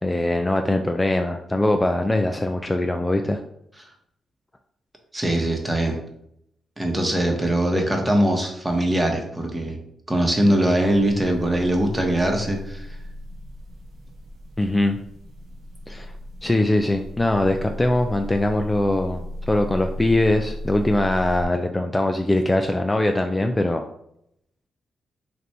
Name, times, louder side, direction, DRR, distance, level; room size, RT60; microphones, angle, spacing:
voice 1, 0.0-3.4 14.6-15.0 15.9-16.1 16.4-23.8, left 1 dB, 15° left, 5 dB, 0.4 m, -22 dB
voice 2, 5.1-6.0 6.8-9.8 10.1-12.9, right 1 dB, 20° right, 2 dB, 1.0 m, -22 dB
sound 1, 10.7-21.4, left 1 dB, 75° right, 0.8 m, -36 dB
3.4 x 2.5 x 4.2 m, 0.75 s
cardioid pair, 65°, 0 cm